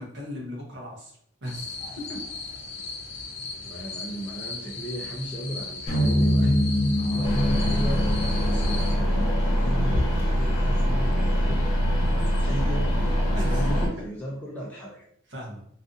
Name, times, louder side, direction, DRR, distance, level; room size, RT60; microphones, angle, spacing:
voice 1, 0.0-1.8 2.1-2.2 7.0-7.4 9.7-9.9 13.3-13.9 15.3-15.6, equal, 55° right, -2 dB, 0.7 m, -37 dB
sound 1, 1.4-8.9, left 4 dB, 55° left, 0.5 m, -37 dB
voice 2, 3.6-6.6 7.0-12.1 12.4-15.0, equal, 5° left, -5 dB, 0.3 m, -35 dB
sound 2, 5.9-10.2, equal, 25° left, 0.8 m, -25 dB
sound 3, 7.2-13.9, equal, 85° left, 0.7 m, -23 dB
2.5 x 2.4 x 2.6 m, 0.67 s
head